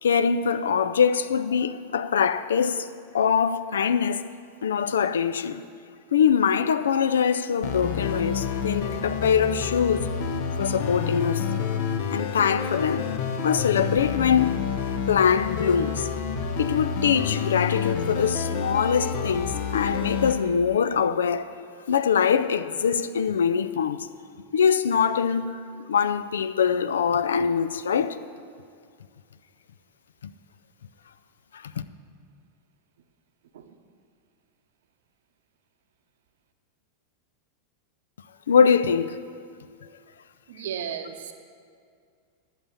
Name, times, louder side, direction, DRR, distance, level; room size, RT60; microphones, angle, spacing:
voice 1, 0.0-2.9 3.1-4.2 4.6-5.6 6.1-10.1 10.6-11.5 12.1-13.1 13.4-14.6 15.1-16.1 16.6-21.5 21.9-24.1 24.5-25.6 25.9-28.2 30.2-30.3 31.5-31.7 38.5-39.2, left 7 dB, 65° left, 0.4 m, -23 dB
sound 1, 7.6-20.3, left 6 dB, 50° left, 0.9 m, -29 dB
voice 2, 40.5-41.3, right 8 dB, 60° right, 0.8 m, -34 dB
11.5 x 7.5 x 7.0 m
figure-of-eight pair, 90°, 0 cm